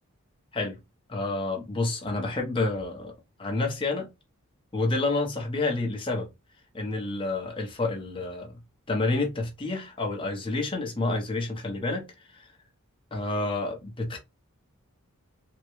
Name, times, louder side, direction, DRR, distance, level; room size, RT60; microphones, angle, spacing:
voice 1, 1.1-3.1 3.4-4.1 4.7-6.3 6.7-8.5 8.9-12.1 12.3-12.5 13.1-14.2, left 2 dB, 25° left, 0.8 m, -29 dB
3.5 x 2.2 x 3.1 m
head